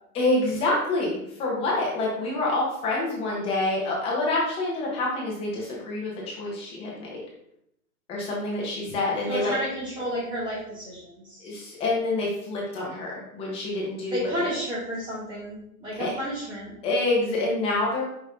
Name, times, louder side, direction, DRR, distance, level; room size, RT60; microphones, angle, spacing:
voice 1, 0.1-7.2 8.1-9.6 11.4-14.5 15.9-16.1 16.8-18.0, left 2 dB, 10° left, -4 dB, 1.2 m, -27 dB
voice 2, 9.3-11.5 14.1-16.7, equal, 10° right, -6 dB, 1.8 m, -31 dB
5.7 x 5.0 x 3.8 m, 0.76 s
hypercardioid pair, 160°, 45 cm